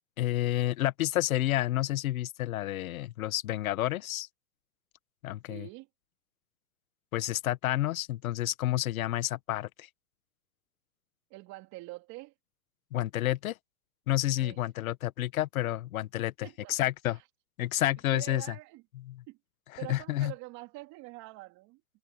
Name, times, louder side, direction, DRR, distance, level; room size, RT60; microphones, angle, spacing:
voice 1, 0.2-4.3 5.2-5.7 7.1-9.9 12.9-13.6 14.1-17.2 17.6-18.5 19.1-19.2 19.9-20.3, left 14 dB, 75° left, 1.5 m, -30 dB
voice 2, 5.5-5.9 11.3-12.3 14.4-14.6 16.4-16.8 17.1-17.2 18.1-18.8 19.3-19.4 19.8-21.8, right 21 dB, 40° right, 3.3 m, -45 dB
supercardioid pair, 140°, 42 cm